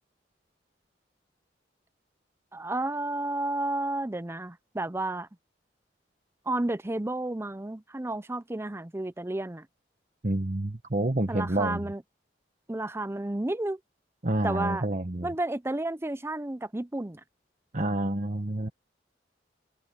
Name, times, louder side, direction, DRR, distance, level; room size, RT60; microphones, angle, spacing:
voice 1, 2.5-5.3 6.5-9.7 11.3-12.0 12.7-13.8 14.4-14.8 15.2-17.2, right 2 dB, 15° right, 0.6 m, -31 dB
voice 2, 10.2-11.8 14.2-15.3 17.7-18.7, right 1 dB, 45° right, 1.4 m, -28 dB
head